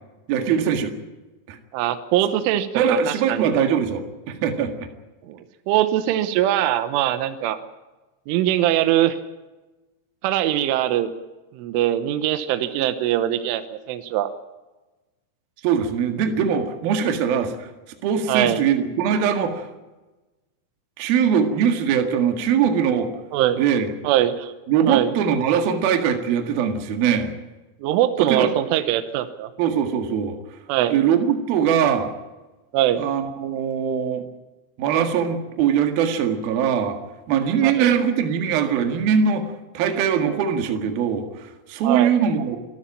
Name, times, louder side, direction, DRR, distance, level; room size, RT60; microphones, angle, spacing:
voice 1, 0.3-0.9 1.5-1.6 2.7-4.9 15.6-17.7 18.0-19.7 21.0-23.1 23.6-23.9 24.7-27.3 28.2-28.5 29.6-30.4 30.9-32.1 33.0-34.3 34.8-37.0 37.3-42.6, right 7 dB, 55° right, 6 dB, 3.2 m, -21 dB
voice 2, 1.7-3.5 5.3-5.4 5.7-7.6 8.3-9.2 10.2-11.1 11.5-14.3 18.3-18.6 23.3-23.6 24.0-24.5 24.9-25.1 27.8-29.5 30.7-31.0 32.7-33.0 37.6-37.7 41.8-42.1, right 12 dB, 80° right, 10 dB, 3.4 m, -22 dB
27.0 x 13.0 x 8.9 m, 1.1 s
omnidirectional pair, 5.9 m